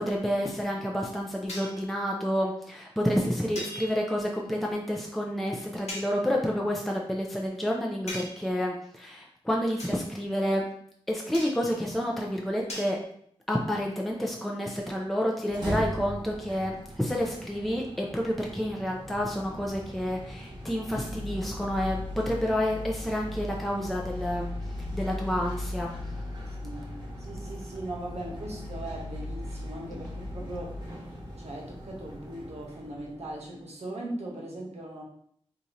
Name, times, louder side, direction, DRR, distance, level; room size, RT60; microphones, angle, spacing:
voice 1, 0.0-10.7 11.1-13.0 13.5-25.9, equal, ahead, -1 dB, 0.5 m, -29 dB
sound 1, 1.5-1.8 3.5-4.3 5.9-6.2 8.1-8.6 9.8-10.0 11.3-11.8 12.7-12.9, left 1 dB, 90° left, 1.0 m, -39 dB
sound 2, 15.4-33.5, left 1 dB, 40° right, 1.1 m, -38 dB
voice 2, 27.2-31.1 31.4-35.0, right 1 dB, 80° right, -2 dB, 1.0 m, -39 dB
2.8 x 2.4 x 4.1 m, 0.65 s
wide cardioid pair, 60°, 11 cm